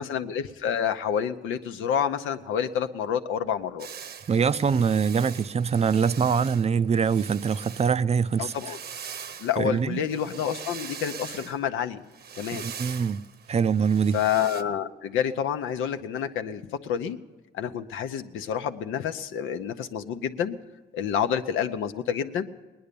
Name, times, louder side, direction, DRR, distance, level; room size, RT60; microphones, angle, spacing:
voice 1, 0.0-3.9 8.4-8.8 9.4-12.0 12.3-12.7 14.1-17.2 17.5-20.6 20.9-22.4, left 8 dB, 90° left, 0.9 m, -28 dB
sound 1, 3.8-7.9 8.3-11.6 12.1-14.6, right 7 dB, 55° right, 0.8 m, -42 dB
voice 2, 4.3-8.5 9.6-10.1 12.5-13.2 13.5-14.2, right 6 dB, 35° right, 0.4 m, -24 dB
19.5 x 10.0 x 6.9 m
cardioid pair, 90°, 20 cm